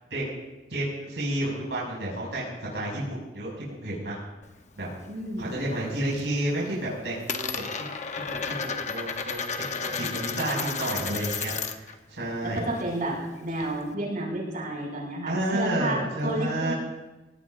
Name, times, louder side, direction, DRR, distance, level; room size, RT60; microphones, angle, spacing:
voice 1, 0.7-2.4 2.7-4.2 4.8-4.9 5.4-7.6 8.3-9.4 9.7-12.7 15.3-16.7, right 1 dB, 90° right, -4 dB, 5.9 m, -30 dB
Coin (dropping), 4.4-5.6 5.9-6.4 6.7-12.0 12.2-13.9, left 5 dB, 45° left, 0.9 m, -33 dB
voice 2, 5.1-5.6 10.4-11.0 12.4-16.7, right 1 dB, 55° right, -3 dB, 6.3 m, -31 dB
22.5 x 18.0 x 2.6 m, 1.1 s
head